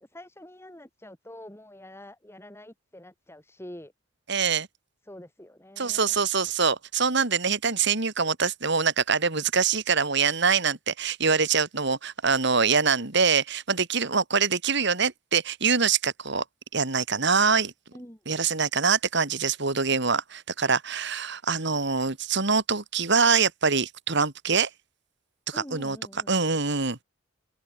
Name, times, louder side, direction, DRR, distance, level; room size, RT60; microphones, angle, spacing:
voice 1, 0.0-3.9 5.1-6.3 17.9-18.2 25.5-26.3, left 1 dB, 15° left, 3.5 m, -46 dB
voice 2, 4.3-4.7 5.8-16.4 16.7-17.7 18.3-24.7 25.5-26.0 26.3-27.0, right 5 dB, 60° right, 2.7 m, -24 dB
head